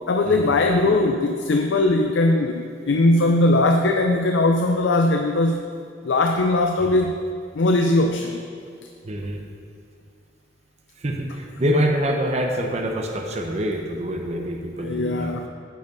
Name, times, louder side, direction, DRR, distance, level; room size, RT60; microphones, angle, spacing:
voice 1, 0.1-5.6 6.0-7.1 7.5-8.4 14.8-15.5, left 2 dB, 75° left, 4 dB, 0.5 m, -20 dB
voice 2, 9.0-9.4 11.0-15.5, right 1 dB, 35° right, 2 dB, 0.7 m, -26 dB
9.1 x 5.3 x 5.3 m, 2.3 s
head